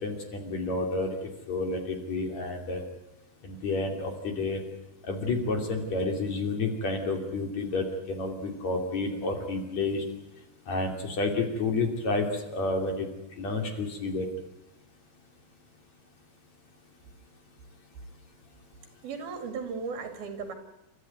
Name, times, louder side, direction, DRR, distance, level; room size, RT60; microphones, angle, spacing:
voice 1, 0.0-1.1 1.5-2.8 3.4-4.6 5.0-10.0 10.7-13.1 13.4-14.3, left 3 dB, 50° left, 3 dB, 3.9 m, -30 dB
voice 2, 19.0-20.5, right 5 dB, 75° right, 6 dB, 4.4 m, -36 dB
30.0 x 13.5 x 9.5 m, 0.96 s
omnidirectional pair, 4.4 m